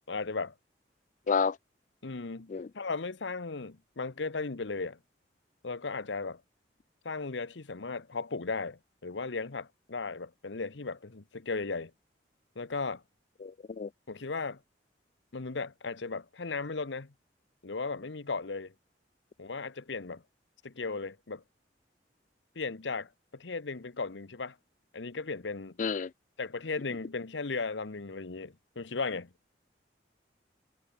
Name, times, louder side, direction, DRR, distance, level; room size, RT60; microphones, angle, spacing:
voice 1, 0.1-0.5 2.0-5.0 5.6-6.4 7.0-11.9 12.6-13.0 14.1-14.6 15.3-17.1 17.6-18.7 19.4-20.2 20.6-21.4 22.5-24.6 24.9-25.7 26.4-29.3, left 4 dB, 90° left, 1.0 m, -36 dB
voice 2, 13.4-13.9 25.8-26.1, left 5 dB, 45° left, 0.4 m, -30 dB
head